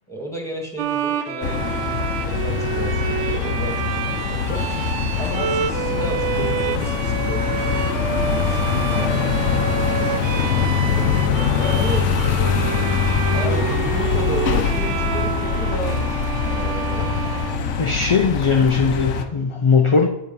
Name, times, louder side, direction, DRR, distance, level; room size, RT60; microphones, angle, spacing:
voice 1, 0.1-4.7 5.2-10.1 10.9-12.2 13.3-17.1, equal, 5° left, 1.7 m, -33 dB
Bowed string instrument, 0.8-18.2, right 9 dB, 75° right, 0.8 m, -28 dB
sound 1, 1.4-19.2, left 6 dB, 85° left, 1.1 m, -23 dB
voice 2, 17.8-20.1, left 5 dB, 40° left, 0.4 m, -21 dB
7.7 x 6.6 x 5.4 m
omnidirectional pair, 1.2 m